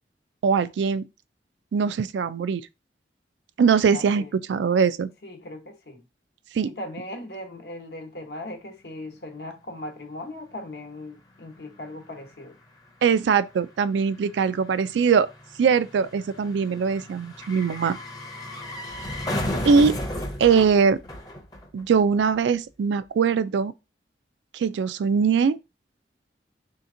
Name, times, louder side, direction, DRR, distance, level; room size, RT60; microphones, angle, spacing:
voice 1, 0.4-1.0 1.7-2.6 3.6-4.2 4.5-5.1 6.5-6.7 13.0-15.3 15.6-18.0 19.7-20.0 20.4-21.0 21.7-23.7 24.5-25.6, right 6 dB, 85° right, 0.3 m, -21 dB
voice 2, 3.9-4.3 5.2-6.0 6.6-12.6 19.5-19.7, left 1 dB, 65° left, 0.9 m, -38 dB
sound 1, 11.4-11.5 11.6-22.0 22.3-22.4, left 1 dB, 20° left, 0.6 m, -35 dB
3.4 x 2.8 x 3.7 m
head